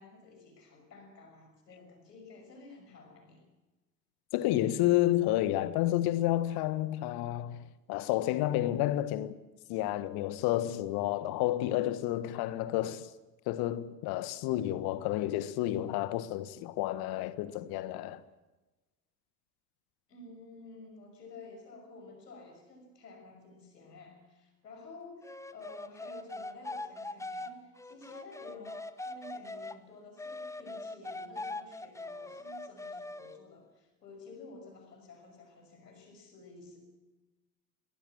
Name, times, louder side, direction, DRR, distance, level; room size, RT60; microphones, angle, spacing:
voice 1, 0.0-3.4 20.1-36.8, left 3 dB, 75° left, 6.3 m, -51 dB
voice 2, 4.3-9.4 9.7-13.1 13.5-18.2, left 14 dB, 50° left, 1.6 m, -30 dB
sound 1, 25.2-29.8 30.2-33.4, left 2 dB, 5° left, 1.1 m, -42 dB
22.5 x 19.5 x 7.4 m
figure-of-eight pair, 65°, 49 cm